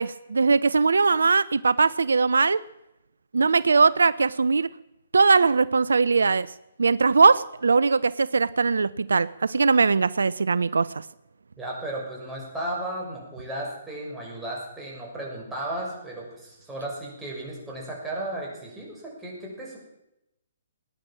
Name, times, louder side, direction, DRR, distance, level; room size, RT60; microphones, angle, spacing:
voice 1, 0.0-2.6 3.3-4.7 5.1-6.5 6.8-11.0, right 4 dB, 80° right, 18 dB, 0.5 m, -20 dB
voice 2, 11.6-19.8, right 1 dB, 10° right, -3 dB, 6.5 m, -34 dB
18.5 x 10.5 x 7.5 m, 0.86 s
figure-of-eight pair, 135°, 0 cm